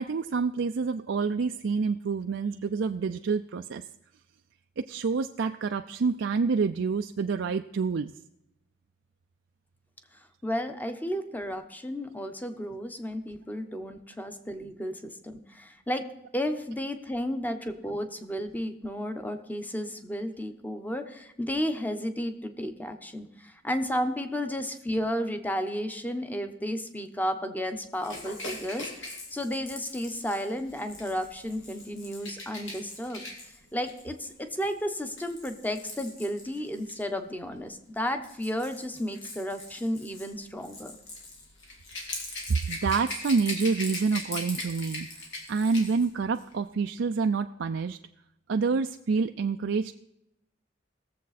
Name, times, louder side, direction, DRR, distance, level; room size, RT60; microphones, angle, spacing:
voice 1, 0.0-3.8 4.8-8.1 42.5-45.1 45.5-48.0 48.5-49.9, right 4 dB, 70° right, 6 dB, 0.4 m, -27 dB
voice 2, 10.4-16.0 16.3-33.2 33.7-40.9, equal, 10° left, 7 dB, 0.9 m, -33 dB
Rattle / Rattle (instrument), 28.0-37.0 38.0-46.1 46.4-46.5, left 2 dB, 80° left, 2.6 m, -41 dB
19.5 x 7.4 x 4.2 m, 0.84 s
head